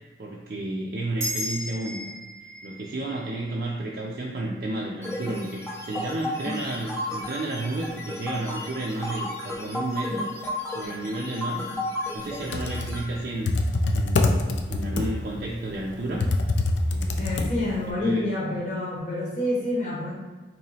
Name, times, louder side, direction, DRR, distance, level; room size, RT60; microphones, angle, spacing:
voice 1, 0.2-2.0 2.6-10.3 10.7-11.7 12.1-13.6 13.9-16.3 16.9-17.3 18.0-18.3, right 2 dB, 50° right, -4 dB, 0.4 m, -32 dB
sound 1, 1.2-5.9, equal, 15° right, 0.8 m, -37 dB
sound 2, 5.0-13.0, left 1 dB, 15° left, 0.5 m, -33 dB
Computer keyboard, 12.3-17.9, left 2 dB, 80° left, 0.4 m, -25 dB
voice 2, 17.2-20.1, left 1 dB, 45° left, -5 dB, 0.9 m, -28 dB
3.0 x 3.0 x 4.1 m, 1.3 s
head